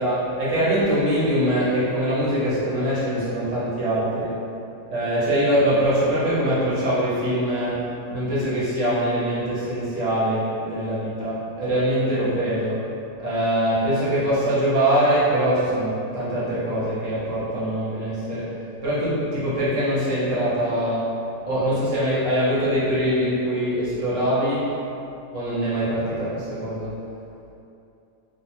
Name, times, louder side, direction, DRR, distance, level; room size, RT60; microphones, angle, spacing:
voice 1, 0.0-4.4 4.9-12.8 13.2-18.5 18.8-21.1 21.5-24.7 25.3-27.0, right 1 dB, 55° right, -9 dB, 0.9 m, -23 dB
2.8 x 2.3 x 4.2 m, 2.7 s
omnidirectional pair, 1.9 m